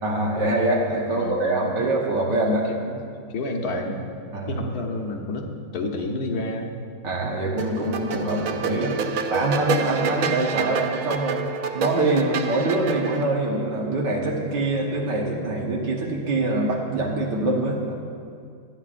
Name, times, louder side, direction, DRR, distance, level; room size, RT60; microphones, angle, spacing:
voice 1, 0.0-2.7 4.3-4.6 7.0-11.4 11.7-17.9, right 2 dB, 80° right, -2 dB, 1.9 m, -24 dB
voice 2, 1.1-2.0 2.7-4.0 4.5-6.7, left 2 dB, 65° left, 2 dB, 1.6 m, -30 dB
sound 1, 7.6-13.2, right 6 dB, 65° right, 0.9 m, -28 dB
25.0 x 9.5 x 2.5 m, 2.3 s
omnidirectional pair, 1.8 m